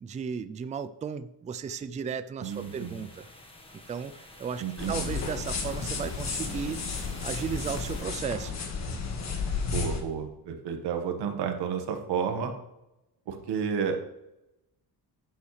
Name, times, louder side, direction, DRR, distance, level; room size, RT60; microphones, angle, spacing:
voice 1, 0.0-3.2 3.9-6.9 7.2-8.6, right 6 dB, 20° right, 12 dB, 0.3 m, -35 dB
sound 1, 2.4-8.0, left 1 dB, 15° left, 1.4 m, -48 dB
voice 2, 2.4-3.0 4.6-5.1 9.7-12.5 13.3-14.1, right 7 dB, 75° right, 5 dB, 1.7 m, -31 dB
sound 2, 4.8-10.0, left 5 dB, 40° left, 1.7 m, -33 dB
11.0 x 8.5 x 3.3 m, 0.89 s
cardioid pair, 160°, 41 cm